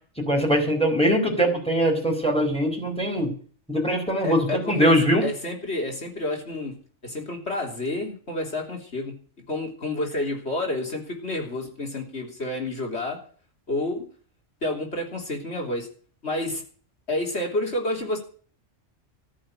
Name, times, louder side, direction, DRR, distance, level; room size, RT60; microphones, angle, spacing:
voice 1, 0.2-3.3 3.7-5.3, equal, 5° left, 0 dB, 4.0 m, -22 dB
voice 2, 4.2-4.9 5.2-6.7 7.0-9.1 9.5-13.2 13.7-14.0 14.6-15.9 16.2-16.6 17.1-18.2, left 1 dB, 60° left, 1 dB, 3.6 m, -29 dB
14.5 x 7.4 x 9.1 m, 0.44 s
omnidirectional pair, 1.3 m